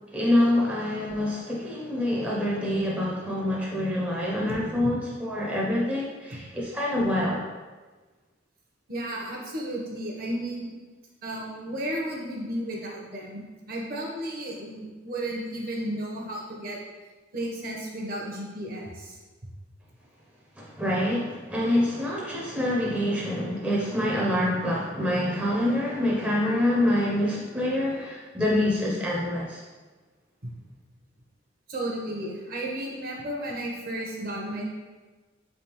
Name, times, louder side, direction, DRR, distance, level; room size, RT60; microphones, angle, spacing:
voice 1, 0.1-7.4 20.6-29.6, left 1 dB, 5° right, -5 dB, 0.5 m, -26 dB
voice 2, 8.9-10.7 11.2-13.4 13.7-16.8 17.3-19.2 30.4-30.5 31.7-34.6, right 1 dB, 50° right, -1 dB, 0.7 m, -33 dB
3.6 x 3.4 x 2.9 m, 1.3 s
head